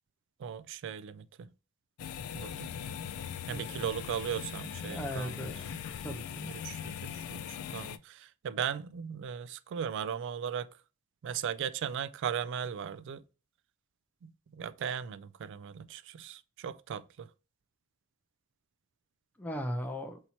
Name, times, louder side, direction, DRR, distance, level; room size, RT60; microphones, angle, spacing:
voice 1, 0.4-1.5 2.3-2.7 3.5-5.5 6.4-10.7 11.2-13.2 14.2-17.3, right 8 dB, 60° right, 0.3 m, -37 dB
sound 1, 2.0-8.0, left 8 dB, 85° left, 0.3 m, -40 dB
voice 2, 4.9-5.7 6.0-6.4 19.4-20.2, equal, 10° left, 0.6 m, -37 dB
4.2 x 2.8 x 4.2 m
head